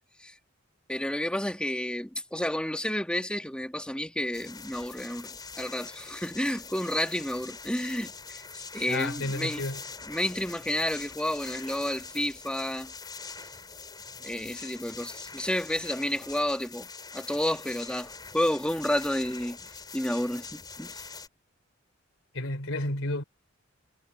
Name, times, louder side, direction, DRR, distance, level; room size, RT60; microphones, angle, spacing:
voice 1, 0.9-5.3 5.5-8.4 8.7-9.6 10.1-12.9 14.2-16.9 17.1-19.6 19.9-20.9, left 1 dB, 5° left, 1.9 m, -30 dB
sound 1, 4.3-21.3, left 5 dB, 20° left, 4.7 m, -44 dB
voice 2, 8.9-9.8 22.3-23.2, left 2 dB, 90° left, 3.3 m, -31 dB
head